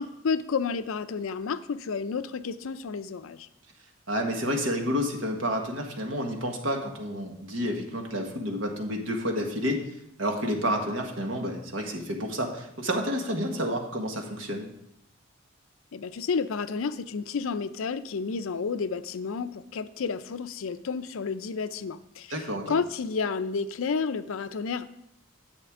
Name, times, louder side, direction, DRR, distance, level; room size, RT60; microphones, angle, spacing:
voice 1, 0.0-3.5 15.9-22.3 22.7-24.9, left 5 dB, 80° left, 13 dB, 0.5 m, -31 dB
voice 2, 4.1-9.8 10.2-14.7 22.3-22.8, equal, 70° right, 2 dB, 1.5 m, -30 dB
10.0 x 7.9 x 3.7 m, 0.77 s
head